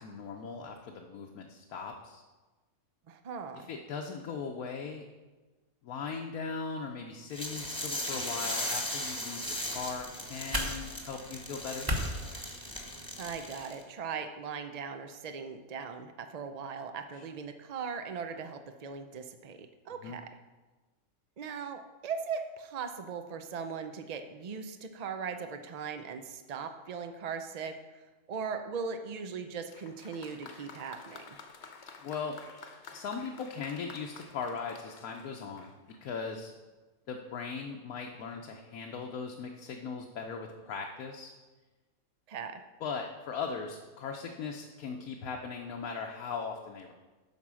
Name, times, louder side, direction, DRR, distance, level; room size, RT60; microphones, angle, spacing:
voice 1, 0.0-2.2 3.6-5.0 5.8-11.9 17.1-17.2 20.0-20.2 32.0-32.3 32.9-35.7 36.0-36.5 37.1-41.3 42.8-46.9, left 5 dB, 85° left, 2 dB, 1.2 m, -39 dB
voice 2, 3.1-3.7 13.2-20.2 21.4-31.4 42.3-42.6, right 6 dB, 70° right, 7 dB, 0.3 m, -39 dB
sound 1, 7.3-13.8, left 1 dB, 5° left, 1.1 m, -38 dB
sound 2, 9.4-13.4, equal, 15° right, 1.0 m, -38 dB
Applause, 29.7-36.2 37.1-37.2, left 5 dB, 55° left, 1.0 m, -51 dB
11.0 x 4.4 x 6.2 m, 1.2 s
omnidirectional pair, 1.5 m